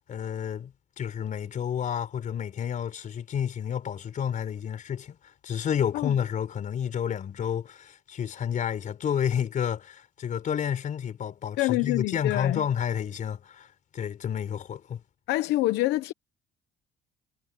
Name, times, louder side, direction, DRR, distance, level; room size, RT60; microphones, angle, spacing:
voice 1, 0.1-13.7 13.9-15.0, left 8 dB, 50° left, 4.2 m, -30 dB
voice 2, 11.6-12.6 15.3-16.1, left 17 dB, 85° left, 0.9 m, -26 dB
cardioid pair, 110°, 17 cm